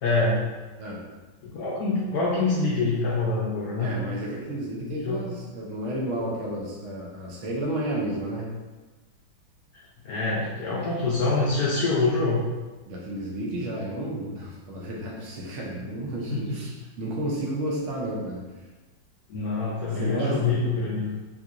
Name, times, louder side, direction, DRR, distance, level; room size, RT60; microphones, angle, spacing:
voice 1, 0.0-0.4 1.4-3.9 4.9-5.2 10.0-12.4 16.3-16.6 19.3-21.1, left 3 dB, 75° left, -6 dB, 0.9 m, -25 dB
voice 2, 3.8-8.5 12.9-18.4 19.9-20.6, right 1 dB, 75° right, -3 dB, 0.6 m, -32 dB
3.7 x 2.8 x 2.4 m, 1.3 s
omnidirectional pair, 2.1 m